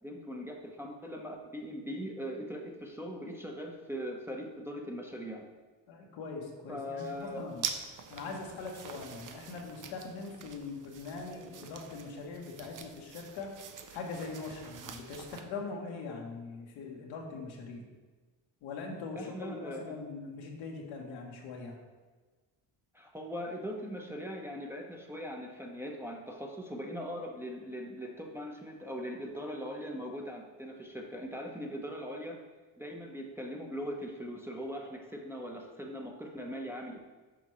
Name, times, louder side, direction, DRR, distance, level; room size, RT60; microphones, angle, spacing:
voice 1, 0.0-5.4 6.7-7.5 19.2-20.0 22.9-32.4 32.8-37.0, equal, 5° right, 0 dB, 0.8 m, -40 dB
voice 2, 5.9-7.7 8.1-13.6 13.9-17.8 18.6-21.8, left 4 dB, 85° left, 0 dB, 1.2 m, -42 dB
sound 1, 7.0-15.4, right 7 dB, 45° right, 0.7 m, -45 dB
6.2 x 5.1 x 3.1 m, 1.3 s
supercardioid pair, 65°, 45 cm